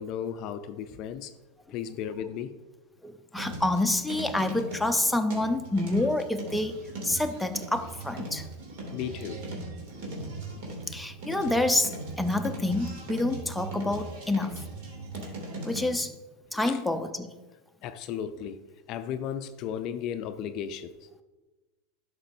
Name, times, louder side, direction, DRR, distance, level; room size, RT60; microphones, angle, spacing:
voice 1, 0.0-1.3 1.7-2.5 8.9-9.5 10.1-10.3 16.5-16.8 17.8-18.6 18.9-21.1, left 9 dB, 50° left, 0.4 m, -35 dB
voice 2, 3.0-8.5 10.9-14.5 15.6-16.1 16.5-17.3, left 2 dB, 5° left, 0.7 m, -28 dB
sound 1, 3.3-16.0, right 2 dB, 60° right, 2.8 m, -39 dB
11.5 x 6.0 x 2.7 m
hypercardioid pair, 95°, 0 cm